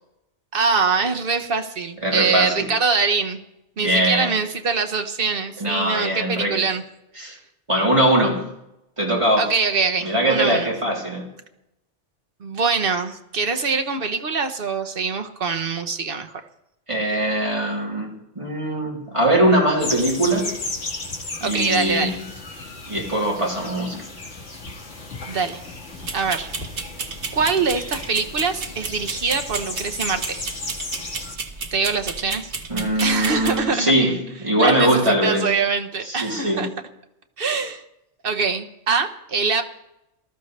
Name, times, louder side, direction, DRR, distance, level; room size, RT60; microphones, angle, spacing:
voice 1, 0.5-3.4 3.8-6.8 9.4-10.7 12.4-16.3 21.4-22.2 25.3-25.6 26.1-26.5 27.3-30.2 31.7-32.5 33.0-33.9 34.6-36.7 37.4-37.8 38.2-39.6, right 4 dB, 55° right, 1.2 m, -23 dB
voice 2, 2.0-2.7 3.8-4.3 5.6-6.6 7.2-7.4 7.7-8.5 9.0-9.5 10.0-11.3 16.9-20.5 21.4-22.2 22.9-24.0 32.7-35.5 36.0-36.6, right 1 dB, 25° right, 3.3 m, -21 dB
sound 1, 19.8-31.4, left 2 dB, 85° left, 2.4 m, -34 dB
sound 2, 26.0-33.6, right 4 dB, 70° right, 1.4 m, -33 dB
19.5 x 13.0 x 3.3 m
omnidirectional pair, 1.2 m